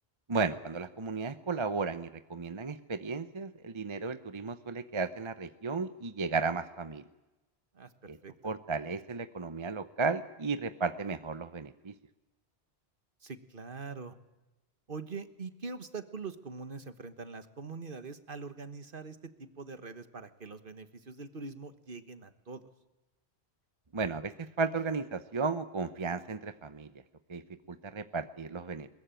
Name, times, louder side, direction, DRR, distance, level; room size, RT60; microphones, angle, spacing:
voice 1, 0.3-7.0 8.1-8.2 8.4-11.9 23.9-26.9 27.3-27.4 27.7-28.9, right 4 dB, 30° right, 11 dB, 0.8 m, -34 dB
voice 2, 7.7-8.3 13.2-14.1 14.9-22.6, right 4 dB, 55° right, 10 dB, 1.5 m, -43 dB
22.0 x 20.5 x 9.1 m, 1.1 s
omnidirectional pair, 1.1 m